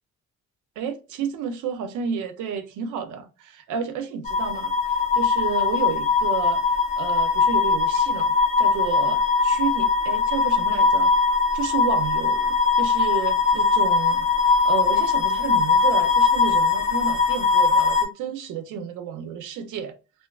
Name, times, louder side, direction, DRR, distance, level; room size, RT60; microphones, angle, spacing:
voice 1, 0.8-11.1 11.5-19.9, right 7 dB, 85° right, 0.5 m, -31 dB
sound 1, 4.2-18.0, left 5 dB, 25° left, 0.6 m, -21 dB
2.5 x 2.3 x 2.3 m
cardioid pair, 90°, 30 cm